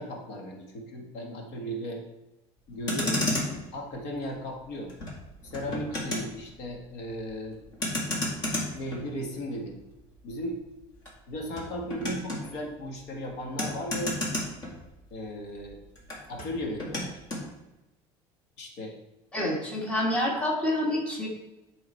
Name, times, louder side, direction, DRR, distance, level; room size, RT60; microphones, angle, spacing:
voice 1, 0.0-2.0 2.7-3.3 3.7-4.9 5.4-7.6 8.7-9.8 10.2-10.6 11.3-14.2 15.1-15.8 16.3-17.2 18.6-19.0, equal, 75° left, 2 dB, 1.6 m, -36 dB
Motor vehicle (road), 2.7-15.3 15.6-17.5, left 1 dB, 35° left, 2.2 m, -34 dB
voice 2, 19.3-21.3, left 1 dB, 10° left, -2 dB, 1.6 m, -27 dB
11.0 x 3.9 x 4.4 m, 1.0 s
cardioid pair, 165°, 12 cm